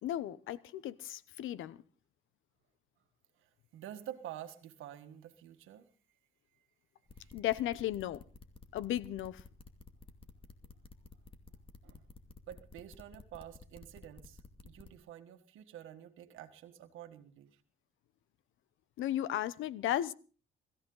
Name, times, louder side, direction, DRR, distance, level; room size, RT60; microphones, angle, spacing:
voice 1, 0.0-1.8 7.3-8.2 8.7-9.4 19.0-20.1, left 12 dB, 80° left, 0.9 m, -35 dB
voice 2, 3.4-5.9 7.1-7.4 11.8-12.0 12.5-17.6, right 11 dB, 85° right, 1.6 m, -49 dB
sound 1, 7.1-14.9, left 4 dB, 25° left, 2.4 m, -53 dB
23.5 x 14.5 x 3.9 m
cardioid pair, 90°, 20 cm